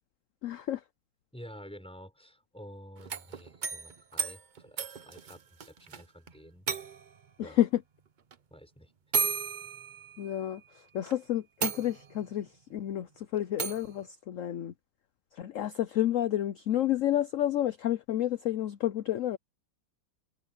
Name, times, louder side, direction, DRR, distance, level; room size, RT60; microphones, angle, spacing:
voice 1, 0.4-0.8 7.4-7.8 10.2-10.6 10.9-14.7 15.4-19.4, left 12 dB, 70° left, 0.7 m, -30 dB
voice 2, 1.3-6.7 7.4-7.6 8.5-8.9 9.2-9.3, equal, 5° left, 5.9 m, -50 dB
sound 1, 3.0-6.0 6.3-6.4 6.7-7.2 8.3-8.4 9.1-10.5 11.1-11.2 11.6-12.3 13.6-13.9, right 6 dB, 80° right, 0.4 m, -34 dB
omnidirectional pair, 2.0 m